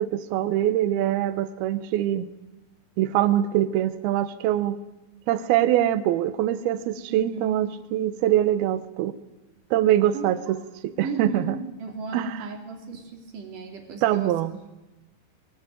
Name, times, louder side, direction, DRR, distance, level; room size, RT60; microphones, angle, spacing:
voice 1, 0.0-2.3 3.0-4.8 5.3-9.1 9.7-10.6 10.8-11.6 12.1-12.4 14.0-14.5, right 12 dB, 85° right, 13 dB, 2.8 m, -23 dB
voice 2, 7.1-7.6 10.1-10.6 11.0-14.3, right 5 dB, 60° right, 3 dB, 4.3 m, -35 dB
22.0 x 19.5 x 9.1 m, 1.1 s
omnidirectional pair, 4.3 m